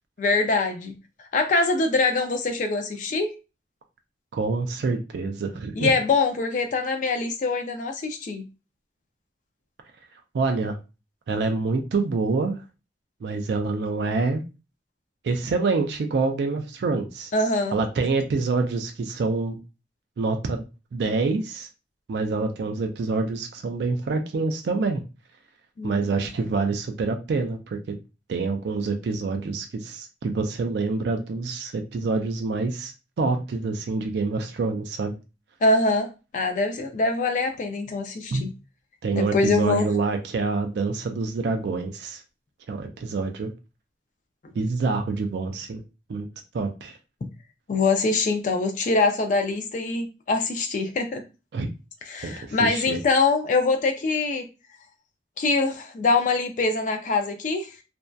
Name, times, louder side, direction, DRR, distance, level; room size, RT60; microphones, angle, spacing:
voice 1, 0.2-0.9 1.3-3.3 5.8-8.4 17.3-17.7 25.8-26.3 35.6-36.1 36.3-38.5 39.1-39.9 47.7-51.2 52.0-54.5 55.4-57.8, left 3 dB, 45° left, 0.3 m, -24 dB
voice 2, 4.3-5.9 10.3-10.8 11.3-12.6 13.2-14.4 15.2-17.3 17.7-19.6 20.2-20.6 20.9-21.7 22.1-25.0 25.8-28.0 28.3-35.1 38.3-38.4 39.0-42.2 42.7-43.5 44.6-45.8 46.1-46.3 46.5-47.0 51.5-51.7 52.2-53.0, right 3 dB, 70° right, 0.3 m, -26 dB
2.6 x 2.1 x 2.2 m
head